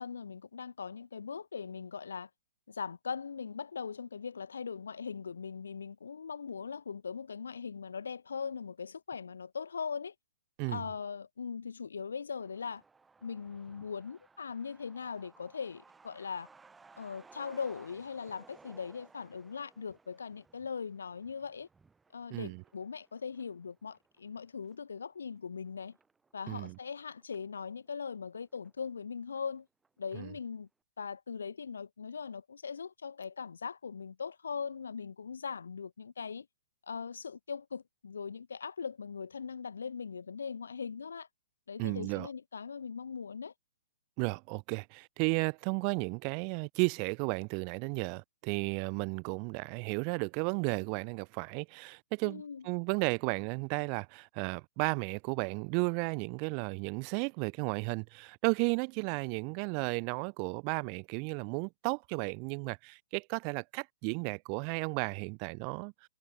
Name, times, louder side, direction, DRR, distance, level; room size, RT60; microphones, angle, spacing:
voice 1, 0.0-2.3 2.7-10.1 10.7-12.8 13.2-16.5 17.0-21.7 22.1-25.9 26.3-29.7 30.0-30.7 31.0-36.5 36.9-41.3 41.7-43.5 52.2-52.7, left 6 dB, 70° left, 0.8 m, -40 dB
Truck, 12.4-27.5 27.9-28.0 28.2-29.1 29.4-29.5 29.8-30.2, right 4 dB, 10° right, 3.0 m, -61 dB
voice 2, 22.3-22.6 26.5-26.8 30.2-30.3 41.8-42.3 44.2-66.1, right 40 dB or more, 35° right, 0.5 m, -34 dB
figure-of-eight pair, 120°, 0 cm